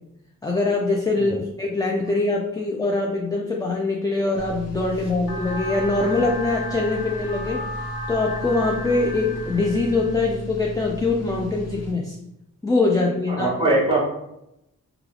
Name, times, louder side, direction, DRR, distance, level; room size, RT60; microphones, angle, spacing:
voice 1, 0.4-7.7 8.1-12.2 12.6-13.5, left 3 dB, 10° left, -1 dB, 0.3 m, -23 dB
sound 1, 4.3-11.9, right 1 dB, 50° left, 0.8 m, -35 dB
sound 2, 5.3-10.3, left 2 dB, 85° left, 0.6 m, -34 dB
voice 2, 13.3-14.0, right 2 dB, 15° right, -5 dB, 1.3 m, -21 dB
3.2 x 2.3 x 2.3 m, 0.83 s
cardioid pair, 60°, 33 cm